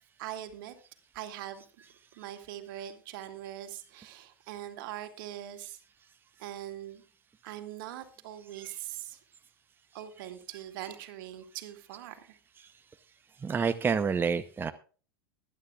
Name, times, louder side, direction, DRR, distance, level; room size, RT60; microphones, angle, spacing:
voice 1, 0.2-0.8 1.1-1.6 2.2-5.8 6.4-7.0 7.4-9.2 9.9-12.4, right 12 dB, 60° right, 8 dB, 2.3 m, -42 dB
voice 2, 13.4-14.7, right 6 dB, 15° right, 10 dB, 0.7 m, -28 dB
20.5 x 11.5 x 2.4 m, 0.38 s
hypercardioid pair, 95°, 13 cm